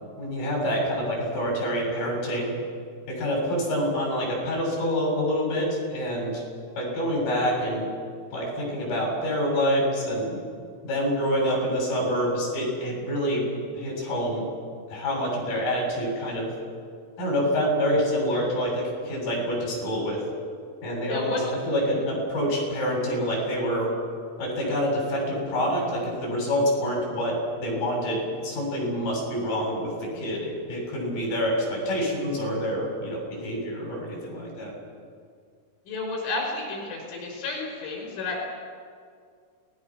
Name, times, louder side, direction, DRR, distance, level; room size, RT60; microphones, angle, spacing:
voice 1, 0.2-2.5 3.1-6.4 6.8-7.9 8.3-10.4 10.8-13.5 13.8-14.5 14.9-16.5 17.2-20.2 20.8-23.9 24.4-34.7, equal, 50° left, -2 dB, 9.1 m, -27 dB
voice 2, 35.9-38.4, left 3 dB, 75° left, -1 dB, 7.4 m, -31 dB
29.5 x 19.5 x 6.2 m, 2.1 s
omnidirectional pair, 5.6 m